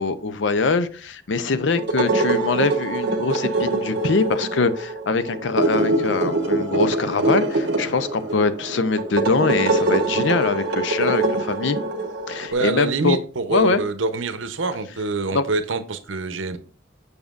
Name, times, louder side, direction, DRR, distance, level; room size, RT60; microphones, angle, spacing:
voice 1, 0.0-11.8 12.3-13.2 13.5-13.8 15.3-15.4, left 4 dB, 70° left, 0.6 m, -23 dB
sound 1, 1.8-12.5, right 2 dB, 60° right, 1.1 m, -24 dB
voice 2, 12.5-16.6, right 3 dB, 80° right, 0.8 m, -25 dB
7.1 x 6.5 x 2.5 m
head